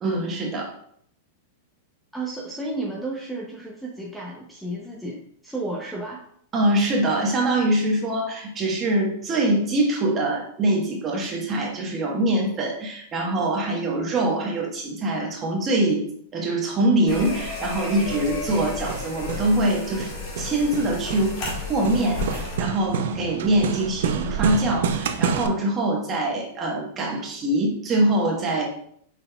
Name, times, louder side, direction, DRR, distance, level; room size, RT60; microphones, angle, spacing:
voice 1, 0.0-0.7 6.5-16.0 16.3-20.1 20.4-21.4 21.7-28.7, right 1 dB, 25° right, -1 dB, 1.2 m, -23 dB
voice 2, 2.1-6.2, right 2 dB, ahead, -3 dB, 0.6 m, -32 dB
sound 1, 17.1-22.6, left 4 dB, 45° left, 1.6 m, -33 dB
Hammer, 17.9-25.5, right 7 dB, 70° right, 0.4 m, -29 dB
5.4 x 4.0 x 2.3 m, 0.64 s
supercardioid pair, 145°, 0 cm